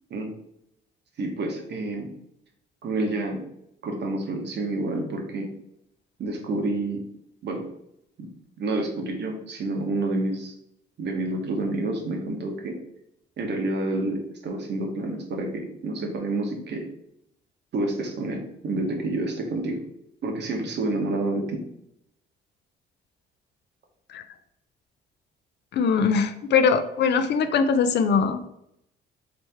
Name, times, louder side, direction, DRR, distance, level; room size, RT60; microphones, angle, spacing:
voice 1, 1.2-2.1 2.8-3.5 3.8-5.5 6.2-7.0 7.4-7.7 8.2-8.3 8.6-10.5 11.0-12.8 13.4-16.9 17.7-19.8 20.2-21.6, right 2 dB, 60° right, 2 dB, 0.9 m, -28 dB
voice 2, 25.7-28.4, left 5 dB, 60° left, 10 dB, 0.4 m, -21 dB
3.1 x 2.9 x 3.4 m, 0.78 s
cardioid pair, 90°, 20 cm